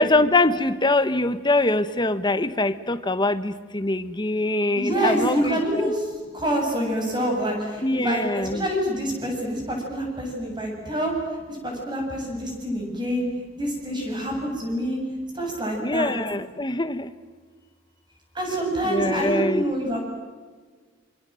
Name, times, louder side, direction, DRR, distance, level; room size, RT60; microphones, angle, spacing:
voice 1, 0.0-5.9 7.8-8.6 15.8-17.1 18.8-19.6, left 2 dB, 20° left, 11 dB, 1.2 m, -23 dB
voice 2, 4.7-6.1 6.3-11.1 11.5-13.3 13.6-15.0 15.3-16.1 18.3-20.0, right 1 dB, 20° right, 1 dB, 8.0 m, -26 dB
28.0 x 25.5 x 7.7 m, 1.5 s
head